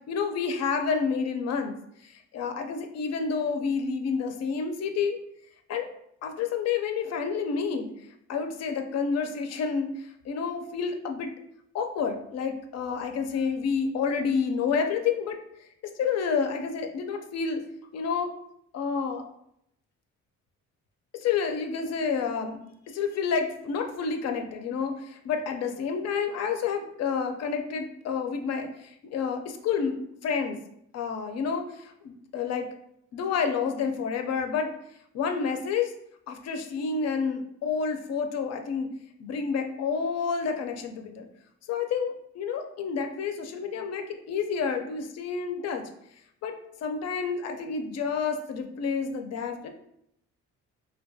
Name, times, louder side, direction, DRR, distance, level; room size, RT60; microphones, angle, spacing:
voice 1, 0.1-1.8 2.0-5.2 5.7-5.9 6.2-7.9 8.3-11.3 11.7-15.4 16.0-17.6 17.9-18.3 18.7-19.3 21.2-22.6 22.9-30.6 30.9-32.7 33.1-34.7 35.1-35.9 36.3-38.9 39.2-41.3 41.7-45.8 46.4-46.5 46.8-49.7, left 5 dB, 60° left, 5 dB, 0.4 m, -29 dB
2.2 x 2.2 x 2.6 m, 0.75 s
cardioid pair, 90°, 30 cm